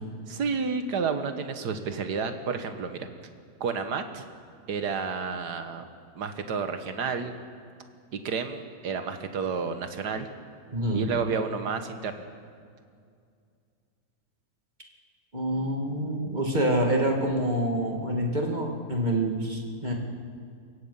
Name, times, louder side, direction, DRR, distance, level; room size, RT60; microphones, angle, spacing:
voice 1, 0.3-3.1 3.6-4.3 4.7-5.9 6.2-7.4 8.1-10.3 10.9-12.3, right 5 dB, 80° right, 8 dB, 1.9 m, -30 dB
voice 2, 10.7-11.1 15.3-19.9, right 1 dB, 25° right, 1 dB, 2.5 m, -27 dB
29.0 x 16.5 x 5.6 m, 2.2 s
omnidirectional pair, 1.7 m